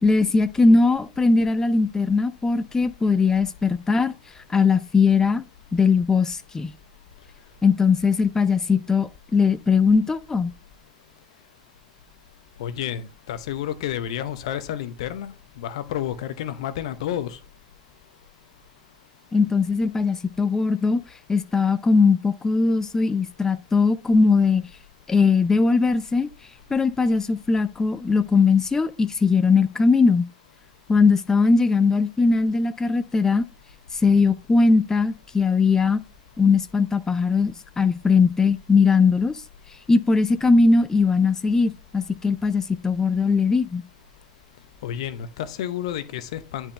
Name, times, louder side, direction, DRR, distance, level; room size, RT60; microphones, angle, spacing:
voice 1, 0.0-5.4 5.7-6.7 7.6-10.5 19.3-21.0 21.3-24.7 25.1-26.3 26.7-30.3 30.9-33.5 33.9-36.0 36.4-39.4 39.9-43.8, left 4 dB, 15° left, 0.5 m, -20 dB
voice 2, 12.6-13.0 13.3-17.4 44.8-46.7, left 11 dB, 65° left, 0.7 m, -30 dB
9.8 x 4.4 x 3.3 m
figure-of-eight pair, 70°, 4 cm